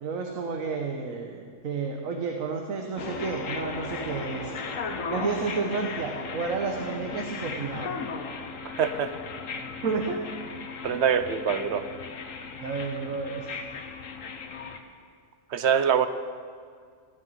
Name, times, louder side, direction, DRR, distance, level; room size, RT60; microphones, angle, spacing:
voice 1, 0.0-4.5 5.1-7.9 9.8-10.2 10.9-11.0 12.6-13.5, right 4 dB, 85° right, 3 dB, 1.4 m, -31 dB
sound 1, 3.0-14.8, left 4 dB, 80° left, 1.4 m, -36 dB
voice 2, 8.7-9.1 10.8-11.9 15.5-16.1, right 8 dB, 60° right, 11 dB, 1.0 m, -24 dB
15.5 x 7.8 x 9.5 m, 2.1 s
omnidirectional pair, 1.4 m